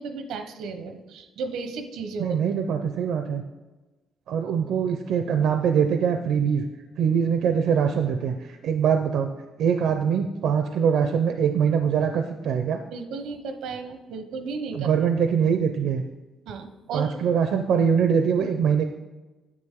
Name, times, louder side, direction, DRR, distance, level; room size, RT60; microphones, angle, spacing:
voice 1, 0.0-2.4 12.9-14.9 16.5-17.2, right 4 dB, 90° right, 7 dB, 0.9 m, -34 dB
voice 2, 2.2-3.4 4.3-6.6 7.0-9.3 9.6-12.8 14.7-16.0 16.9-18.8, right 7 dB, 70° right, 7 dB, 0.5 m, -23 dB
9.7 x 7.8 x 3.7 m, 1.2 s
cardioid pair, 175°, 0 cm